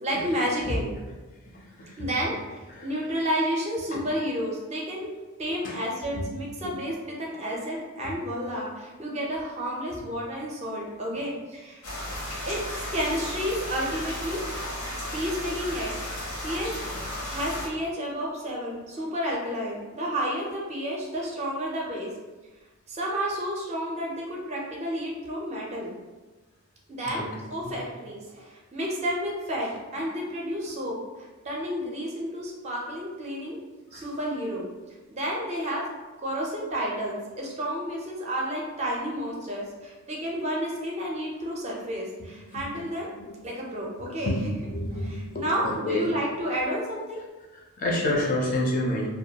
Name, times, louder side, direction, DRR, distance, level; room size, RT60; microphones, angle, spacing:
voice 1, 0.0-0.9 2.0-2.4 2.8-5.1 5.4-11.8 12.5-14.4 15.1-15.9 16.4-16.8 17.3-22.1 22.9-25.9 26.9-33.6 33.9-34.7 35.1-35.9 36.2-43.1 43.4-44.5 44.9-47.2 48.0-48.2, equal, 30° right, -2 dB, 0.4 m, -31 dB
voice 2, 1.5-2.1 2.7-3.1 3.9-4.0 5.5-5.8 6.1-6.3 6.6-6.7 8.0-8.1 11.2-11.3 16.9-17.0 27.1-27.7 33.9-34.1 42.5-42.8 43.2-43.3 44.2-46.1 47.5-49.1, left 1 dB, 35° left, -2 dB, 0.4 m, -30 dB
sound 1, 11.8-17.7, left 1 dB, 75° left, 0.6 m, -34 dB
2.2 x 2.2 x 2.7 m, 1.2 s
head